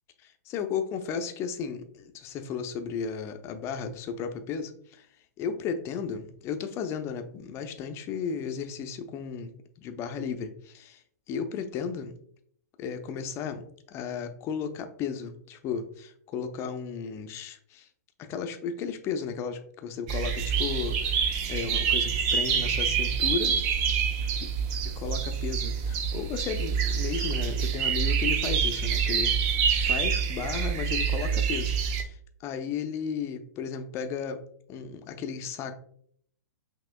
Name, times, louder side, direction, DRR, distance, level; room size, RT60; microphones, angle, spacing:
voice 1, 0.2-5.1 5.4-9.5 9.8-11.0 11.3-12.1 12.8-17.9 18.2-21.2 21.5-23.9 25.0-31.7 32.0-34.4 34.7-35.8, left 6 dB, 30° left, 8 dB, 0.5 m, -34 dB
sound 1, 20.1-32.0, right 7 dB, 40° right, 0.6 m, -27 dB
5.6 x 2.9 x 2.2 m, 0.63 s
hypercardioid pair, 130°, 9 cm